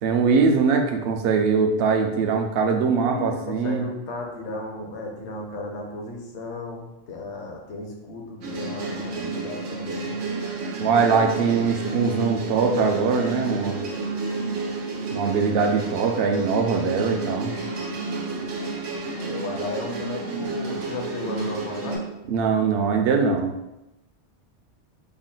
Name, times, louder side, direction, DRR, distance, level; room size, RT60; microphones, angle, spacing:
voice 1, 0.0-3.9 10.8-13.8 15.1-17.5 22.3-23.5, right 5 dB, 65° right, 3 dB, 0.7 m, -22 dB
voice 2, 2.9-10.1 15.2-15.5 19.2-22.1, left 2 dB, 70° left, 1 dB, 1.0 m, -35 dB
sound 1, 8.4-22.0, right 3 dB, 90° right, 1.1 m, -30 dB
3.5 x 2.2 x 3.8 m, 0.93 s
omnidirectional pair, 1.2 m